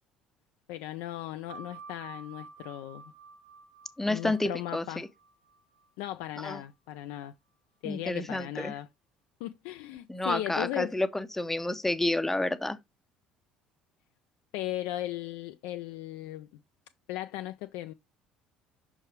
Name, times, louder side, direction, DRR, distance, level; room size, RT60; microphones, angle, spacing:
voice 1, 0.7-3.0 4.1-5.0 6.0-7.3 7.8-8.9 9.4-11.0 14.5-16.5 17.1-17.9, left 14 dB, 60° left, 0.3 m, -37 dB
sound 1, 1.5-6.7, right 5 dB, 30° right, 1.2 m, -51 dB
voice 2, 4.0-5.1 6.4-6.6 7.8-8.7 10.1-12.8, left 2 dB, 10° left, 0.6 m, -30 dB
6.3 x 4.7 x 3.2 m
figure-of-eight pair, 55°, 3 cm